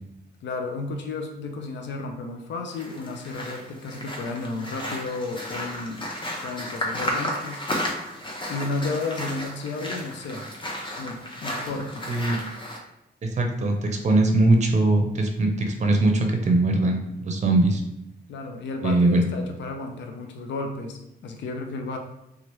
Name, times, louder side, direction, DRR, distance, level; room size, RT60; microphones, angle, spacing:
voice 1, 0.4-6.1 6.4-7.6 8.5-10.4 11.0-12.0 18.3-22.0, left 3 dB, 85° left, 4 dB, 0.4 m, -33 dB
sound 1, 2.7-12.8, left 1 dB, 25° left, 0.7 m, -33 dB
voice 2, 12.1-12.4 13.2-17.8 18.8-19.2, right 2 dB, 40° right, 3 dB, 0.6 m, -21 dB
2.9 x 2.4 x 3.0 m, 0.85 s
cardioid pair, 80°, 18 cm